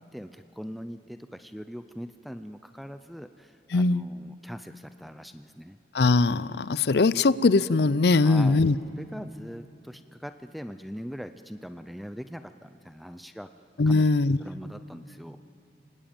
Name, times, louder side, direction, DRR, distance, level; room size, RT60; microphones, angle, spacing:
voice 1, 0.1-5.8 8.2-8.6 9.0-13.5 13.9-14.1 14.4-15.4, equal, ahead, 9 dB, 0.5 m, -41 dB
voice 2, 3.7-4.0 5.9-8.8 13.8-14.4, left 3 dB, 70° left, 18 dB, 0.5 m, -21 dB
29.5 x 19.0 x 8.9 m, 2.9 s
head